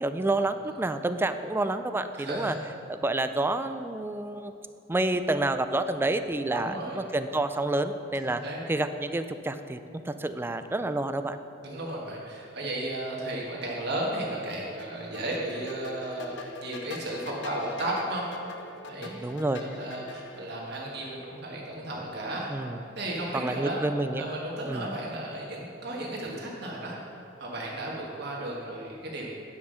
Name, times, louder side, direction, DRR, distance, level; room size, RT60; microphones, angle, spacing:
voice 1, 0.0-2.6 2.9-4.5 4.9-8.4 8.7-9.8 10.0-11.4 19.0-19.6 22.5-22.8 23.3-24.2 24.7-24.9, right 2 dB, 10° right, 10 dB, 0.3 m, -29 dB
voice 2, 2.1-2.6 6.5-7.0 8.2-8.6 11.6-18.2 18.9-19.2 19.6-23.8 24.1-27.0 27.4-29.3, right 1 dB, 60° right, -3 dB, 1.5 m, -34 dB
sound 1, 14.8-20.4, left 3 dB, 70° left, 0.7 m, -43 dB
9.6 x 5.5 x 6.3 m, 2.8 s
head